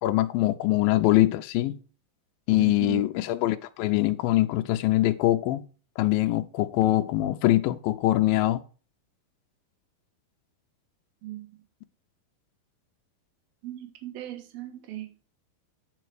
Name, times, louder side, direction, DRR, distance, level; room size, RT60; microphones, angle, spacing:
voice 1, 0.0-1.8 2.5-5.6 6.0-8.6, left 16 dB, 80° left, 2.2 m, -23 dB
voice 2, 2.6-3.0 11.2-11.5 13.6-15.1, right 13 dB, 80° right, 3.1 m, -37 dB
9.1 x 5.8 x 4.6 m
omnidirectional pair, 4.3 m